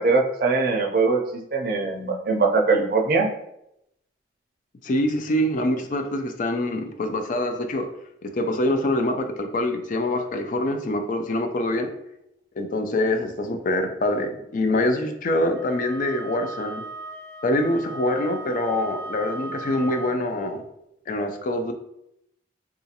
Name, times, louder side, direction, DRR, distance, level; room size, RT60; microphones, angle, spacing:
voice 1, 0.0-3.3, right 3 dB, 50° right, 2 dB, 0.5 m, -22 dB
voice 2, 4.8-7.9 8.2-11.9 12.6-16.8 17.4-20.6 21.1-21.7, left 1 dB, 45° left, 6 dB, 0.3 m, -25 dB
Wind instrument woodwind instrument, 15.5-20.3, right 2 dB, 5° left, 0.8 m, -37 dB
3.8 x 2.4 x 2.8 m, 0.81 s
head